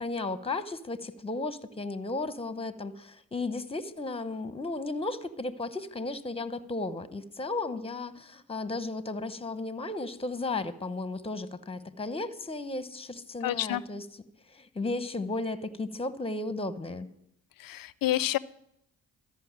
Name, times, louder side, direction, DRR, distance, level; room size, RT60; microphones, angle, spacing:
voice 1, 0.0-14.1 14.5-17.1, left 2 dB, 15° left, 13 dB, 1.0 m, -34 dB
voice 2, 13.4-13.8 17.6-18.4, left 14 dB, 60° left, 19 dB, 0.6 m, -28 dB
13.5 x 5.6 x 8.8 m, 0.77 s
supercardioid pair, 60°, 39 cm